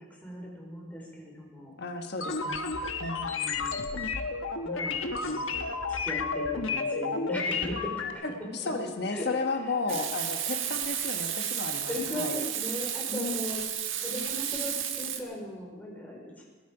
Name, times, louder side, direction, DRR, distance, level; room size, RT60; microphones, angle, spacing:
voice 1, 0.2-1.7 3.2-4.0 4.6-5.5 5.9-8.2 8.6-8.7 9.1-9.3 9.9-10.0 10.5-10.7 11.9-13.6 14.0-16.4, left 1 dB, 10° left, -2 dB, 4.3 m, -38 dB
voice 2, 1.8-2.7 3.0-3.3 8.2-12.4 13.1-13.4, left 3 dB, 55° left, 4 dB, 1.3 m, -33 dB
sound 1, 2.2-8.1, left 4 dB, 85° left, 1.3 m, -31 dB
Frying (food), 9.9-15.2, right 9 dB, 75° right, 1.5 m, -32 dB
20.5 x 12.5 x 5.0 m, 1.3 s
head